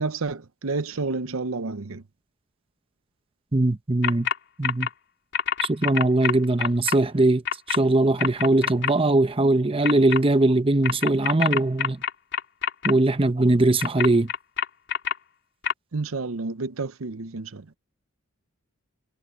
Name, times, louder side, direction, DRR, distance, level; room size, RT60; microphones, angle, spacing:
voice 1, 0.0-2.0 15.9-17.6, right 3 dB, 75° right, 0.8 m, -30 dB
voice 2, 3.5-4.3 4.6-4.9 5.6-7.4 7.7-12.0 12.8-14.3, right 2 dB, 25° right, 0.8 m, -21 dB
sound 1, 4.0-4.4 4.6-4.9 5.3-7.0 7.5-7.8 8.2-8.9 9.8-10.2 10.8-12.9 13.8-15.1 15.6-15.7, left 8 dB, 55° left, 3.0 m, -25 dB
head